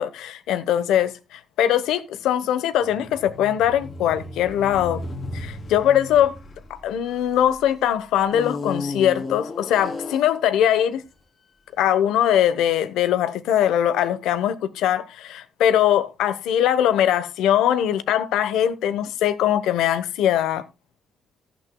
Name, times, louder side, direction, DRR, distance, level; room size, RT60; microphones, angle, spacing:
voice 1, 0.0-5.0 5.3-6.4 6.7-11.0 11.8-20.6, left 10 dB, 85° left, 1.0 m, -21 dB
sound 1, 2.8-7.6 8.3-10.5, left 2 dB, 50° left, 3.3 m, -34 dB
14.5 x 11.5 x 2.3 m
cardioid pair, 90°, 0 cm